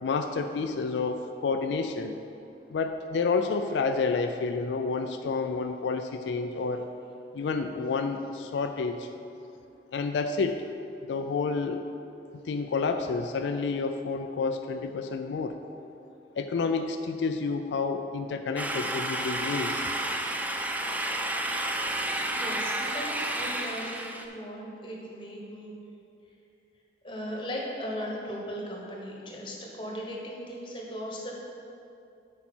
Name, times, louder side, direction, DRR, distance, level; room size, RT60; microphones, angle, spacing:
voice 1, 0.0-2.2 2.7-6.9 7.3-9.1 9.9-10.6 11.1-11.8 12.4-15.6 16.4-19.9, left 4 dB, 90° left, 7 dB, 0.4 m, -29 dB
sound 1, 18.6-24.2, right 1 dB, 10° right, 0.3 m, -31 dB
voice 2, 22.2-25.7 27.0-31.3, equal, 30° left, -2 dB, 1.1 m, -37 dB
8.4 x 5.3 x 4.4 m, 2.7 s
head